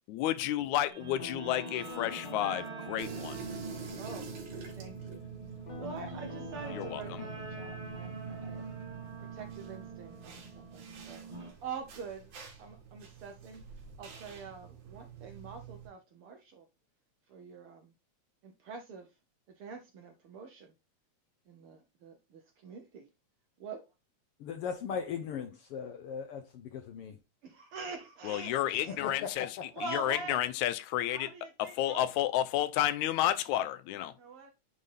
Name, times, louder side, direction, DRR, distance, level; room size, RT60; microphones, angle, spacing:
voice 1, 0.1-3.5 6.7-7.3 28.2-31.3 31.6-34.1, left 13 dB, 90° left, 2.0 m, -31 dB
Guitar, 0.9-11.5, right 2 dB, 15° right, 2.4 m, -45 dB
Guitar 2, 1.2-5.0 5.6-10.4, left 2 dB, 45° left, 1.9 m, -49 dB
sound 1, 3.0-15.9, right 8 dB, 85° right, 3.3 m, -47 dB
voice 2, 4.0-4.3 4.8-5.2 5.8-8.7 9.3-12.3 12.6-13.6 14.0-16.6 17.3-17.9 18.4-19.1 19.5-20.7 21.5-23.0 23.6-23.8 27.4-29.0 29.7-30.4 31.1-32.1 34.2-34.5, right 4 dB, 65° right, 1.4 m, -45 dB
voice 3, 24.4-27.2 28.9-29.6, left 7 dB, 70° left, 1.4 m, -38 dB
9.5 x 3.9 x 3.3 m
omnidirectional pair, 3.3 m